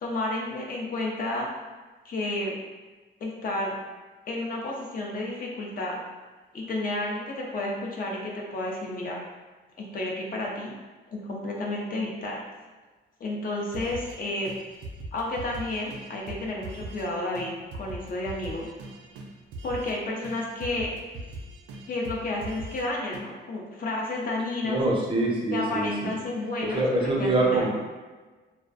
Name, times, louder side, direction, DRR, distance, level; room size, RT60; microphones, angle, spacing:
voice 1, 0.0-1.5 2.0-2.6 3.2-3.7 4.3-6.0 6.5-9.2 9.8-10.7 11.1-12.4 13.2-14.5 15.1-17.5 17.8-18.7 19.6-21.0 21.9-24.8 25.5-27.7, left 2 dB, 45° left, -2 dB, 0.5 m, -31 dB
sound 1, 13.7-14.2 14.5-17.1 17.3-17.5 17.7-20.0 20.2-22.8 23.1-23.2, right 2 dB, 80° right, 0.4 m, -40 dB
voice 2, 24.6-26.1 26.7-27.7, right 2 dB, 25° right, -3 dB, 0.5 m, -25 dB
2.4 x 2.1 x 2.4 m, 1.3 s
cardioid pair, 90°, 20 cm